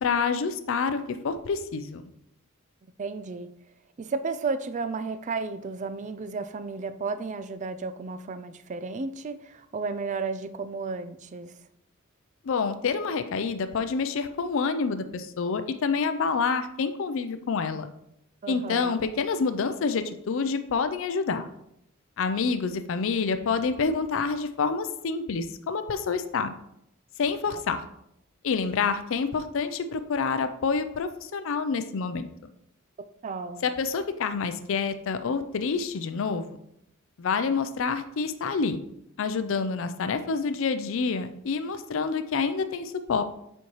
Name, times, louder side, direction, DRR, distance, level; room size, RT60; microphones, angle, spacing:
voice 1, 0.0-2.0 12.4-17.9 18.5-21.5 22.2-26.5 27.2-27.8 28.4-32.3 33.6-36.5 37.2-38.8 39.2-43.2, left 5 dB, 65° left, 0.4 m, -27 dB
voice 2, 3.0-3.5 4.0-11.5 18.4-19.0 33.2-33.7, right 4 dB, 35° right, 0.4 m, -33 dB
7.0 x 4.5 x 3.0 m
head